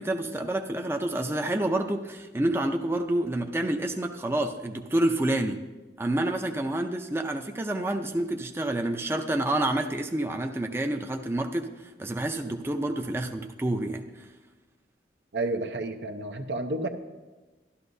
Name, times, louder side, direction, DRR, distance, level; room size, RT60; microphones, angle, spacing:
voice 1, 0.0-5.6 6.0-14.3, right 1 dB, 15° right, 4 dB, 0.5 m, -28 dB
voice 2, 15.3-16.9, right 2 dB, 75° right, 6 dB, 0.8 m, -30 dB
13.0 x 12.0 x 2.7 m, 1.2 s
head